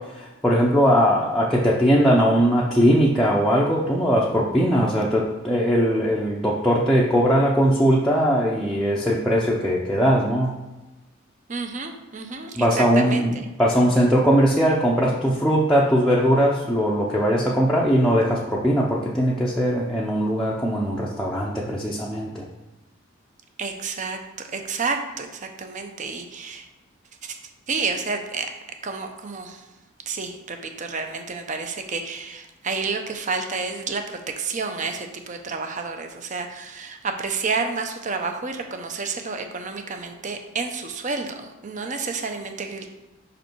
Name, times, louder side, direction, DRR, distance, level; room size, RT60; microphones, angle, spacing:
voice 1, 0.2-10.6 12.6-22.4, equal, ahead, -6 dB, 0.6 m, -20 dB
voice 2, 11.5-13.4 23.6-24.2 24.5-26.7 27.2-27.4 27.7-28.5 28.8-29.7 30.1-42.9, right 4 dB, 40° right, 5 dB, 0.7 m, -30 dB
5.5 x 5.2 x 4.6 m, 1.1 s
head